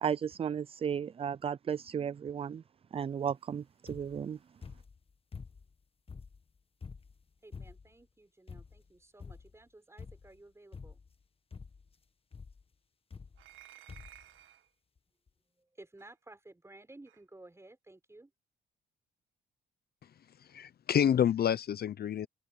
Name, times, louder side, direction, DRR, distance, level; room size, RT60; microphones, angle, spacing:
voice 1, 0.0-2.6 2.9-4.4, right 8 dB, 30° right, 0.4 m, -34 dB
sound 1, 3.9-4.2 4.6-5.8 6.1-8.0 8.5-8.9 9.2-9.6 10.0-10.4 10.7-11.2 11.5-11.9 12.3-12.6 13.1-13.6 13.9-14.3 15.0-15.1 15.3-15.4, left 5 dB, 30° left, 1.4 m, -48 dB
voice 2, 7.4-11.0 15.5-18.3, right 2 dB, 15° right, 5.3 m, -55 dB
sound 2, 13.4-14.7 16.0-16.1 17.1-17.2, right 12 dB, 85° right, 1.7 m, -55 dB
voice 3, 20.4-22.3, left 9 dB, 50° left, 0.7 m, -28 dB
open air
cardioid pair, 90°, 20 cm